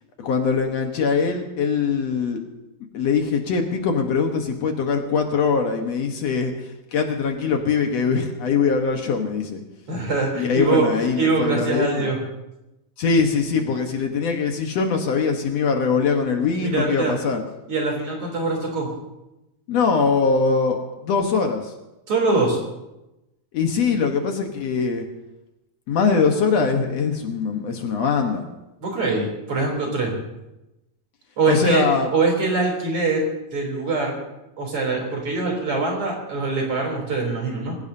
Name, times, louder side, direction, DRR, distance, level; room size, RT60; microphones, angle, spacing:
voice 1, 0.2-2.4 2.9-6.5 6.9-9.6 10.4-12.1 13.0-17.4 19.7-21.7 23.5-25.1 25.9-28.5 31.5-32.1, left 5 dB, 65° left, 3 dB, 2.4 m, -22 dB
voice 2, 9.9-10.8 11.2-12.2 16.6-17.2 17.7-18.9 22.1-22.6 28.8-30.2 31.4-31.8 32.1-34.2 34.6-37.8, right 3 dB, 50° right, -1 dB, 4.4 m, -23 dB
25.5 x 16.0 x 2.8 m, 0.97 s
omnidirectional pair, 3.4 m